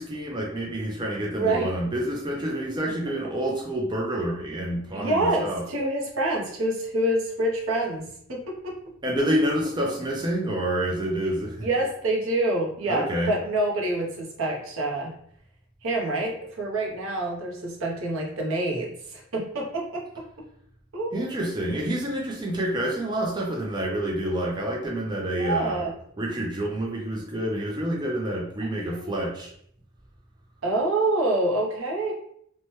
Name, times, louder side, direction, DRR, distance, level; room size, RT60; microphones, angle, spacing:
voice 1, 0.0-5.6 9.0-11.7 12.9-13.4 21.1-25.9 26.2-29.5, right 1 dB, 20° right, -2 dB, 0.4 m, -28 dB
voice 2, 1.3-1.7 2.9-3.0 4.9-8.7 11.6-15.1 15.8-20.0 20.9-21.1 25.3-25.9 28.6-29.1 30.6-32.1, right 2 dB, 70° right, 0 dB, 0.7 m, -27 dB
3.0 x 2.1 x 2.9 m, 0.67 s
head